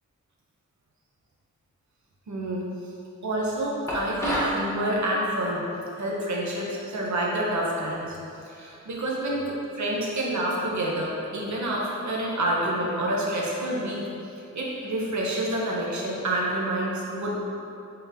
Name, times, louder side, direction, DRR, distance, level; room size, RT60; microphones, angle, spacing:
voice 1, 2.3-2.7 3.2-5.6 6.0-8.2 8.4-14.1 14.5-17.4, right 1 dB, 70° right, -3 dB, 0.8 m, -28 dB
sound 1, 3.9-4.6, equal, 10° left, 0.7 m, -27 dB
3.8 x 3.7 x 2.7 m, 2.6 s
wide cardioid pair, 135°, 29 cm